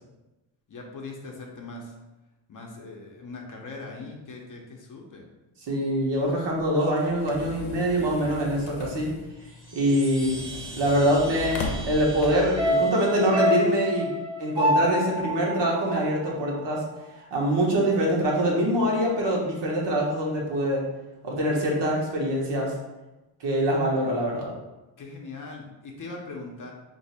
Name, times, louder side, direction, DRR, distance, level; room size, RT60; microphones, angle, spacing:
voice 1, 0.7-1.9 2.5-5.3 25.0-26.7, left 3 dB, 45° left, 0 dB, 0.6 m, -40 dB
voice 2, 5.7-9.1 9.7-10.4 10.7-14.1 14.4-16.8 17.3-20.8 21.2-22.7 23.4-24.5, right 1 dB, 65° right, -2 dB, 1.1 m, -24 dB
sound 1, 6.1-12.7, left 3 dB, 90° left, 0.7 m, -38 dB
Chime, 9.3-14.0, right 3 dB, 90° right, 1.1 m, -43 dB
sound 2, 12.6-17.0 17.3-17.4, left 1 dB, 10° right, 0.4 m, -27 dB
2.6 x 2.5 x 4.2 m, 1.0 s
cardioid pair, 125°, 45 cm